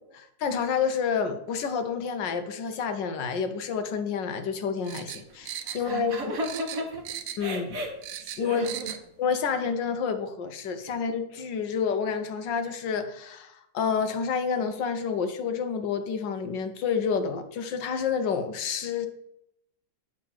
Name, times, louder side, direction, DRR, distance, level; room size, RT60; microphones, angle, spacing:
voice 1, 0.1-6.4 7.4-7.6 8.4-8.6 9.2-19.1, left 6 dB, 70° left, 8 dB, 1.4 m, -29 dB
sound 1, 4.8-6.2 6.4-7.6 7.8-9.0 9.3-9.4, right 11 dB, 90° right, 1.5 m, -38 dB
voice 2, 5.6-7.1 7.4-9.0, right 1 dB, 50° right, 4 dB, 1.5 m, -34 dB
9.2 x 3.9 x 7.0 m, 0.82 s
omnidirectional pair, 2.1 m